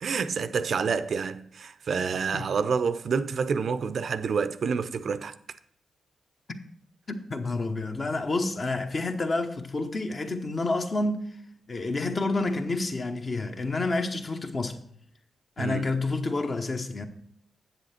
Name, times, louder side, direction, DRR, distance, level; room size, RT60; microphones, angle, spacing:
voice 1, 0.0-5.3 15.6-15.9, right 5 dB, 65° right, 0.5 m, -28 dB
voice 2, 7.1-11.3 11.7-14.8 15.6-17.1, left 2 dB, 45° left, 1.0 m, -29 dB
8.0 x 7.0 x 4.3 m
supercardioid pair, 45°, 0 cm